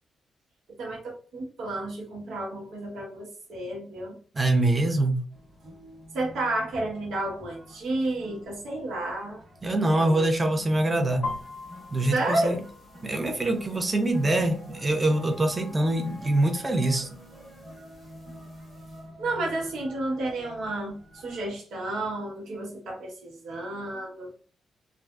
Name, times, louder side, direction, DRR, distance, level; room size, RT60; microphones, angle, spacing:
voice 1, 0.8-4.1 6.1-9.4 9.7-10.3 12.1-12.6 19.2-24.3, right 2 dB, 80° right, -2 dB, 1.2 m, -31 dB
voice 2, 4.3-5.2 9.6-11.3 11.9-12.6 13.0-17.1, right 1 dB, 15° right, 5 dB, 0.5 m, -24 dB
sound 1, 5.3-21.5, equal, 50° right, 1.1 m, -47 dB
sound 2, 11.2-19.0, left 3 dB, 35° left, 0.6 m, -44 dB
3.4 x 2.5 x 2.4 m, 0.40 s
wide cardioid pair, 175°, 0 cm